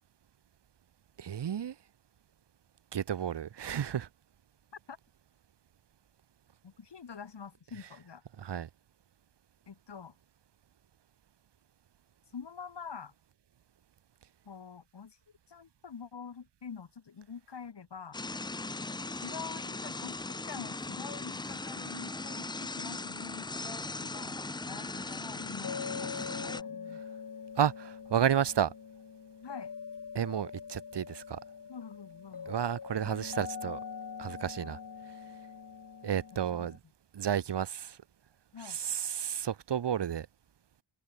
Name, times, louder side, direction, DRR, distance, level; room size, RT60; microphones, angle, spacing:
voice 1, 1.2-1.7 2.9-4.1 8.4-8.7 27.6-28.7 30.1-31.4 32.5-33.8 34.2-34.8 36.0-36.8 37.1-38.0 38.6-40.3, right 9 dB, 80° right, 0.9 m, -31 dB
voice 2, 6.6-8.2 9.7-10.1 12.3-13.1 14.4-15.2 15.5-18.2 19.1-24.4 24.7-27.0 29.4-29.7 31.7-32.6 36.3-36.7 38.5-38.8, left 6 dB, 85° left, 3.1 m, -46 dB
sound 1, 18.1-26.6, left 3 dB, 10° left, 0.3 m, -39 dB
sound 2, 24.7-36.8, left 6 dB, 50° left, 1.3 m, -43 dB
wide cardioid pair, 115°, 41 cm